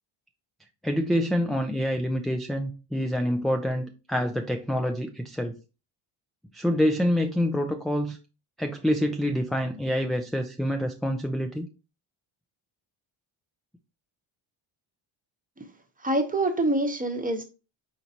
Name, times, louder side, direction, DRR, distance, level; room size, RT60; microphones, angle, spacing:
voice 1, 0.8-5.5 6.5-8.2 8.6-11.7, equal, ahead, 5 dB, 0.3 m, -26 dB
voice 2, 16.0-17.4, right 1 dB, 15° right, 5 dB, 0.9 m, -25 dB
4.4 x 3.9 x 2.8 m, 0.32 s
cardioid pair, 90°, 48 cm